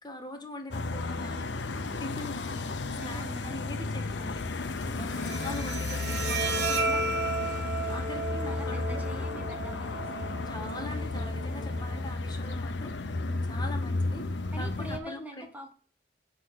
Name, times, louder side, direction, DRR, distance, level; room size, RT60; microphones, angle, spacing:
voice 1, 0.0-2.7 3.0-4.4 4.9-7.3 7.6-9.5 10.5-12.9 13.5-15.5, left 2 dB, 25° left, 5 dB, 1.1 m, -42 dB
sound 1, 0.7-15.0, left 3 dB, 75° left, 0.7 m, -33 dB
voice 2, 3.0-3.6 4.8-5.3 8.4-10.3 13.3-13.5 14.5-15.7, equal, 10° right, 3 dB, 1.0 m, -44 dB
Bowed string instrument, 5.1-12.1, right 2 dB, 70° right, 1.1 m, -34 dB
6.4 x 3.9 x 6.2 m, 0.42 s
head